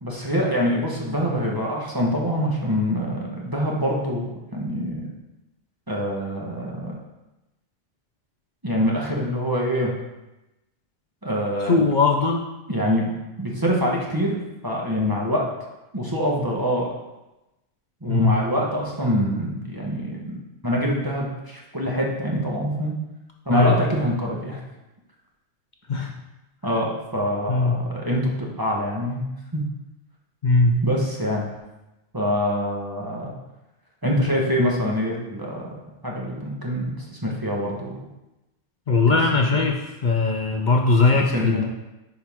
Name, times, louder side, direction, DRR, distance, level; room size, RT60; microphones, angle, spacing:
voice 1, 0.0-5.1 5.9-7.0 8.6-9.9 11.2-11.9 12.7-13.1 13.4-14.4 14.6-15.5 15.9-16.9 18.0-20.4 20.6-22.9 23.5-24.6 26.6-29.2 29.5-29.6 30.8-31.4 32.1-33.3 34.0-35.7 36.0-36.9 37.2-38.0 39.1-39.2 39.6-39.7 41.3-41.6, equal, 20° right, -3 dB, 1.2 m, -25 dB
voice 2, 11.7-12.5 18.1-18.4 23.5-23.8 25.9-26.1 27.5-27.9 30.4-30.8 38.9-41.6, left 3 dB, 50° left, 2 dB, 0.6 m, -20 dB
10.5 x 4.6 x 3.6 m, 0.99 s
omnidirectional pair, 1.3 m